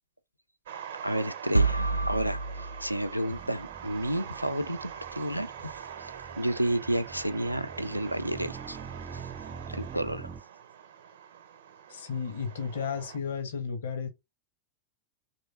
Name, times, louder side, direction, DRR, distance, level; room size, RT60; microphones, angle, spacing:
sound 1, 0.7-13.2, right 9 dB, 60° right, 0.7 m, -44 dB
voice 1, 1.0-8.8 9.1-9.3 9.7-10.3, right 1 dB, 90° right, 0.4 m, -31 dB
sound 2, 1.5-3.6, right 3 dB, 90° left, 0.3 m, -28 dB
sound 3, 3.3-10.4, right 5 dB, 25° right, 0.3 m, -45 dB
voice 2, 11.9-14.1, left 6 dB, 60° left, 1.0 m, -33 dB
3.2 x 3.1 x 4.1 m
figure-of-eight pair, 90°, 0 cm